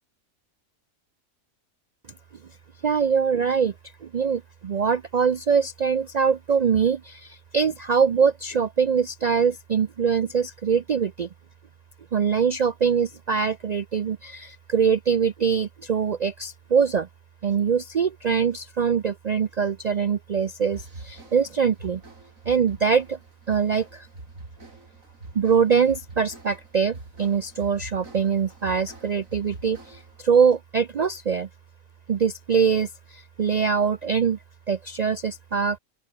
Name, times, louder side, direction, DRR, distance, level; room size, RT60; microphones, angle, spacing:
voice 1, 2.8-3.7 4.0-11.3 12.1-17.1 17.4-22.0 22.5-23.2 23.5-24.1 25.3-31.5 32.1-34.4 34.7-35.8, right 6 dB, 60° right, 0.4 m, -23 dB
sound 1, 20.7-30.2, right 3 dB, 80° right, 4.7 m, -44 dB
open air
omnidirectional pair, 1.4 m